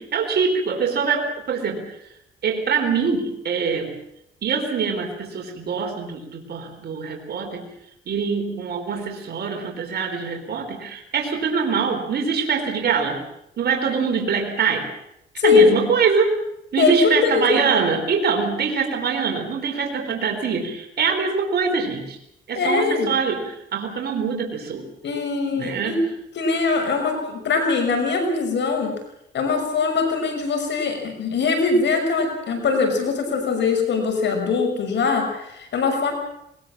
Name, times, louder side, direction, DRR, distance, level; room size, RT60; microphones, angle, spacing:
voice 1, 0.0-1.8 2.4-3.9 4.4-7.7 8.1-13.2 13.6-14.9 15.4-16.4 16.7-22.2 22.5-24.9 25.6-26.1, right 5 dB, 55° right, 2 dB, 4.3 m, -24 dB
voice 2, 15.4-15.7 16.8-17.7 22.5-23.1 25.0-26.0 26.4-28.9 29.3-36.1, left 4 dB, 65° left, 4 dB, 6.1 m, -21 dB
21.0 x 21.0 x 7.5 m, 0.80 s
cardioid pair, 90°, 20 cm